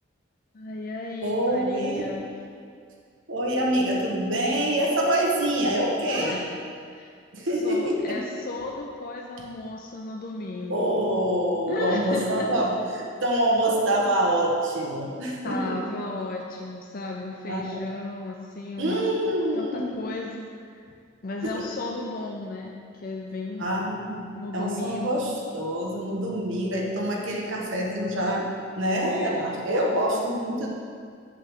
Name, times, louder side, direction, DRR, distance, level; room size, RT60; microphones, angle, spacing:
voice 1, 0.5-2.3 6.1-6.4 6.9-7.1 7.6-10.9 11.7-12.5 15.4-19.0 19.5-20.9 21.2-23.7 24.3-25.2 29.0-29.6, left 2 dB, 40° left, 0 dB, 0.4 m, -34 dB
voice 2, 1.2-2.1 3.3-6.4 7.3-8.2 10.7-15.8 17.4-17.8 18.8-20.0 21.4-21.6 23.6-24.3 24.5-28.5 28.8-30.7, right 1 dB, 60° right, -2 dB, 1.1 m, -26 dB
7.6 x 7.4 x 3.5 m, 2.2 s
head